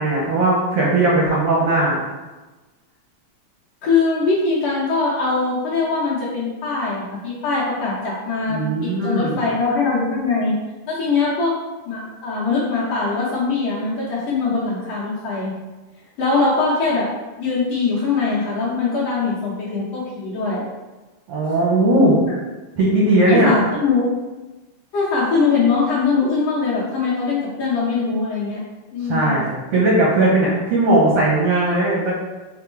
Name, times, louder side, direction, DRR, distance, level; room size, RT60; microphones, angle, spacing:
voice 1, 0.0-2.0 8.4-9.4 21.3-22.2 22.8-23.6 29.1-32.1, right 2 dB, 80° right, -5 dB, 1.3 m, -18 dB
voice 2, 3.8-8.6 9.0-10.5 10.9-11.5 11.9-15.5 16.2-17.1 17.4-20.6 23.2-24.1 24.9-28.6 28.9-29.3, left 4 dB, 65° left, -7 dB, 1.6 m, -21 dB
5.3 x 2.1 x 4.3 m, 1.2 s
omnidirectional pair, 3.6 m